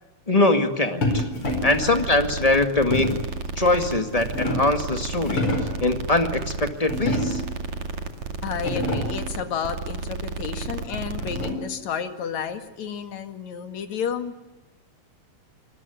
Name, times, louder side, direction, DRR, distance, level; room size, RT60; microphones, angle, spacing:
voice 1, 0.3-1.3 1.6-3.1 3.6-5.5 5.8-7.4, left 2 dB, 15° left, 7 dB, 1.5 m, -22 dB
sound 1, 1.0-1.8 2.9-3.3 4.0-4.8 5.2-5.8 6.9-7.6 8.2-8.3 8.5-9.3 10.6-11.8, left 1 dB, 45° left, 5.4 m, -28 dB
sound 2, 1.1-11.5, right 3 dB, 70° right, 3.5 m, -32 dB
voice 2, 1.7-2.0 8.4-14.3, left 7 dB, 70° left, 8 dB, 3.3 m, -31 dB
26.5 x 21.0 x 9.4 m, 1.0 s
omnidirectional pair, 3.4 m